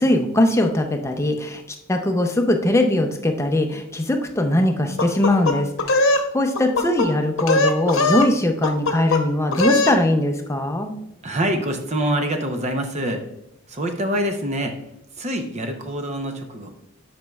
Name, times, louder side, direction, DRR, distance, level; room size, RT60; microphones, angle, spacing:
voice 1, 0.0-1.6 1.9-10.9, left 1 dB, 15° left, 4 dB, 0.6 m, -21 dB
sound 1, 5.0-6.3 6.6-7.1 7.4-8.3 8.6-9.2 9.5-10.0, left 2 dB, 65° left, 0.9 m, -20 dB
voice 2, 11.2-13.3 13.7-16.7, right 1 dB, 30° right, 5 dB, 0.7 m, -25 dB
10.5 x 5.2 x 2.3 m, 0.84 s
head